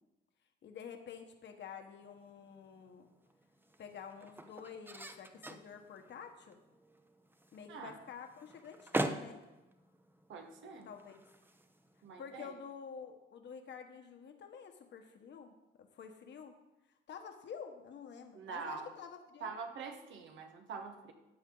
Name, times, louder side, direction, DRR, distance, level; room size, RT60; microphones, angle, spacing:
voice 1, 0.6-3.1 3.8-6.6 7.5-9.4 10.8-11.2 12.2-16.5 17.1-19.6, left 6 dB, 65° left, 5 dB, 1.4 m, -49 dB
sound 1, 2.0-12.4, right 1 dB, 10° right, 0.8 m, -44 dB
voice 2, 10.3-10.9 12.0-12.6 18.3-18.9 19.4-21.1, right 5 dB, 75° right, 4 dB, 1.6 m, -44 dB
13.5 x 7.9 x 4.0 m, 1.0 s
cardioid pair, 90°, 20 cm